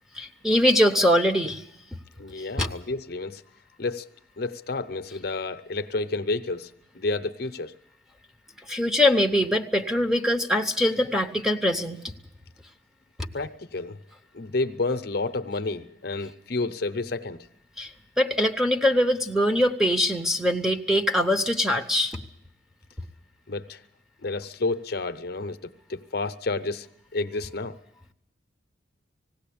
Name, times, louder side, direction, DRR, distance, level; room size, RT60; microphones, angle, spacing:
voice 1, 0.1-1.6 2.6-2.7 8.7-12.1 17.8-17.9 18.2-22.2, left 1 dB, ahead, 2 dB, 0.9 m, -22 dB
voice 2, 2.2-3.4 3.8-4.0 4.4-6.7 6.9-7.7 13.3-14.0 14.3-17.4 23.5-23.8 24.2-25.6 25.9-26.9 27.1-27.7, left 3 dB, 50° left, 10 dB, 0.7 m, -30 dB
19.5 x 16.5 x 8.6 m, 0.79 s
head